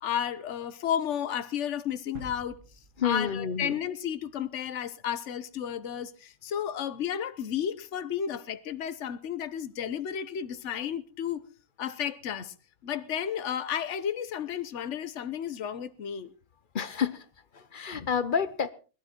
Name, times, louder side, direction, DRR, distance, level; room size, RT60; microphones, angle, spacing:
voice 1, 0.0-2.6 3.0-11.4 11.8-12.5 12.8-16.3, left 9 dB, 60° left, 1.2 m, -32 dB
sound 1, 2.2-4.1 4.5-4.6, right 2 dB, 75° right, 2.6 m, -49 dB
voice 2, 3.0-3.7 16.7-17.2 17.5-18.7, left 7 dB, 45° left, 0.9 m, -29 dB
20.5 x 12.5 x 4.4 m
omnidirectional pair, 1.5 m